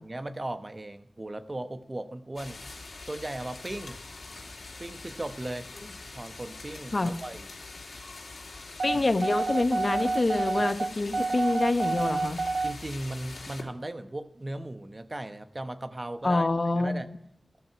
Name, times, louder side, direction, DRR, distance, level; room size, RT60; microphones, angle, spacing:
voice 1, 0.0-2.6 3.0-4.0 4.8-5.7 6.1-7.5 8.9-9.1 12.6-16.5 16.7-17.1, right 1 dB, 35° right, 9 dB, 1.1 m, -37 dB
sound 1, 2.4-13.6, left 3 dB, 80° left, 3.0 m, -44 dB
voice 2, 8.8-12.4 16.2-17.2, left 2 dB, 50° left, 8 dB, 1.3 m, -26 dB
sound 2, 8.8-12.8, right 3 dB, 80° right, 0.5 m, -29 dB
13.5 x 13.0 x 4.7 m, 0.75 s
wide cardioid pair, 60°, 0 cm